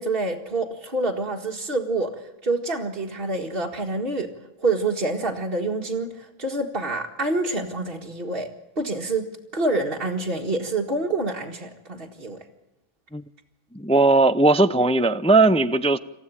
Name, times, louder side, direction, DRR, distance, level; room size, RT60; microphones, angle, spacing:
voice 1, 0.0-4.3 4.6-8.5 8.8-9.3 9.5-12.4, right 2 dB, 40° right, 2.0 m, -27 dB
voice 2, 13.7-16.0, right 2 dB, 10° left, 0.3 m, -18 dB
27.5 x 15.0 x 9.1 m
omnidirectional pair, 1.5 m